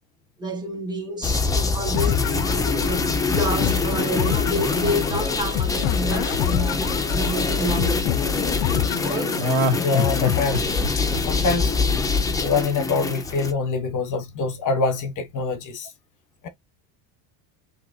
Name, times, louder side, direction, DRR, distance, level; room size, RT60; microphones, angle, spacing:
voice 1, 0.4-8.5 9.0-9.4, equal, 10° right, 1.6 m, -29 dB
sound 1, 1.2-13.5, left 4 dB, 10° left, 0.4 m, -24 dB
sound 2, 1.9-10.9, left 12 dB, 65° left, 0.6 m, -28 dB
Laughter, 3.5-7.8 9.3-12.4 12.7-12.8, equal, 75° right, 1.9 m, -28 dB
voice 2, 9.8-10.8 11.3-11.7 12.4-15.9 16.4-16.5, left 4 dB, 40° left, 1.2 m, -25 dB
5.7 x 2.9 x 2.7 m
cardioid pair, 140°, 50 cm